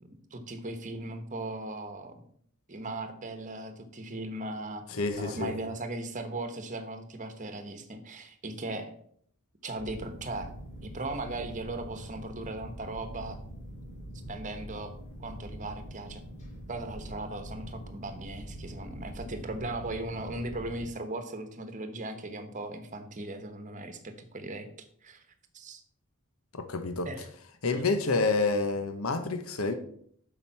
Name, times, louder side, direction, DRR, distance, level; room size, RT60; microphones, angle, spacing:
voice 1, 0.0-2.2 2.7-4.9 5.2-8.9 9.6-10.5 10.8-13.4 14.3-14.9 15.2-16.2 16.7-24.7 25.0-25.2 25.5-25.8 27.0-27.3 27.7-27.8, right 2 dB, 35° right, 1.1 m, -38 dB
voice 2, 4.9-5.5 26.5-27.1 27.6-29.7, left 3 dB, 80° left, 0.9 m, -28 dB
sound 1, 9.8-20.9, equal, 35° left, 2.9 m, -44 dB
7.2 x 5.1 x 5.8 m
head